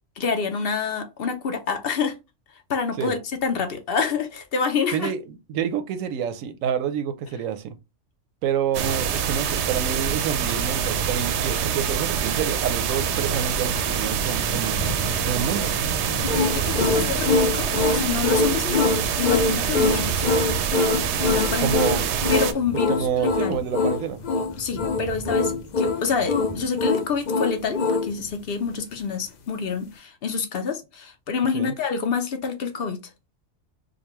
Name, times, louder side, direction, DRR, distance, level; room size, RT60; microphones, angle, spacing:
voice 1, 0.2-2.1 2.7-5.1 16.5-20.3 21.2-21.7 22.3-23.6 24.6-33.0, left 5 dB, 55° left, 0.8 m, -27 dB
voice 2, 4.9-7.8 8.4-14.8 15.2-15.7 21.6-22.1 22.9-24.2 31.5-31.7, right 8 dB, 90° right, 1.0 m, -28 dB
sound 1, 8.7-22.5, right 8 dB, 65° right, 0.8 m, -25 dB
sound 2, 13.0-29.1, equal, 20° left, 1.6 m, -38 dB
sound 3, 16.2-28.1, left 4 dB, 90° left, 0.3 m, -23 dB
5.1 x 2.2 x 3.0 m
omnidirectional pair, 1.3 m